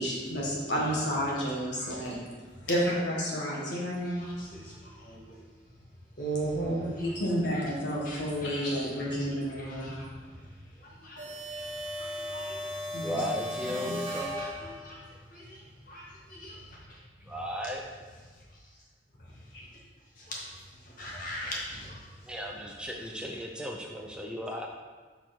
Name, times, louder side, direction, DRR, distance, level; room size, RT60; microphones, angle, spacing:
voice 1, 0.0-2.2 2.7-4.2 6.8-9.9 12.9-13.1 13.8-14.0, equal, 70° left, -4 dB, 1.9 m, -30 dB
voice 2, 4.2-5.3 6.2-7.2 7.5-7.6 8.0-9.1 9.6-10.1 11.0-11.2 11.5-11.7 12.0-12.6 14.1-15.0 15.3-15.6 15.9-16.6 20.3-20.5 21.0-22.0, right 2 dB, 50° left, -4 dB, 1.9 m, -38 dB
sound 1, 11.2-15.1, equal, 45° right, 1.4 m, -37 dB
voice 3, 13.0-14.4 17.3-17.8 22.2-24.7, equal, 5° right, 0 dB, 0.5 m, -35 dB
7.6 x 4.5 x 4.4 m, 1.4 s
head